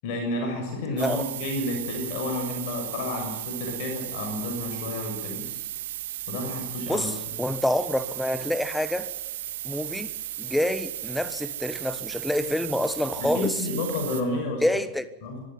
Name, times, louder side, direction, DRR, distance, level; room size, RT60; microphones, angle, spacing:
voice 1, 0.0-5.6 6.3-7.1 13.2-14.6 15.2-15.4, left 2 dB, 45° left, 7.0 m, -31 dB
voice 2, 0.9-1.2 6.9-9.1 9.6-13.6 14.6-15.1, left 1 dB, 5° left, 1.4 m, -27 dB
sound 1, 1.0-14.2, right 13 dB, 55° right, 2.3 m, -35 dB
24.5 x 14.0 x 9.3 m
figure-of-eight pair, 90°, 0 cm